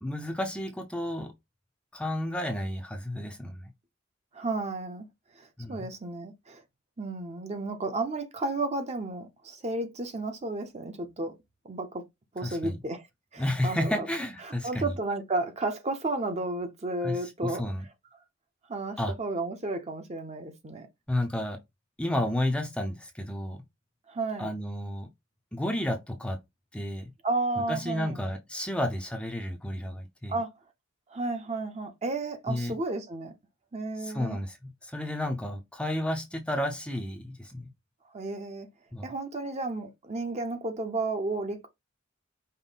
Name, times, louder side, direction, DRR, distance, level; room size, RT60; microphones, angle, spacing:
voice 1, 0.0-1.3 1.9-3.7 5.6-5.9 12.4-12.8 13.4-14.9 17.0-17.8 19.0-19.1 21.1-21.6 22.0-23.6 24.4-25.1 25.5-26.4 26.7-27.1 27.6-30.4 32.5-32.7 34.0-34.6 34.8-37.7 38.9-39.1, left 1 dB, 5° left, 0.6 m, -32 dB
voice 2, 4.3-5.1 5.4-6.6 7.0-11.3 11.6-12.1 12.3-13.0 13.3-14.1 14.4-17.7 18.7-20.9 24.1-24.5 27.2-28.2 30.3-30.5 31.1-33.3 33.7-34.4 38.1-38.7 39.0-41.7, right 2 dB, 35° right, 0.8 m, -32 dB
5.4 x 2.1 x 3.9 m
head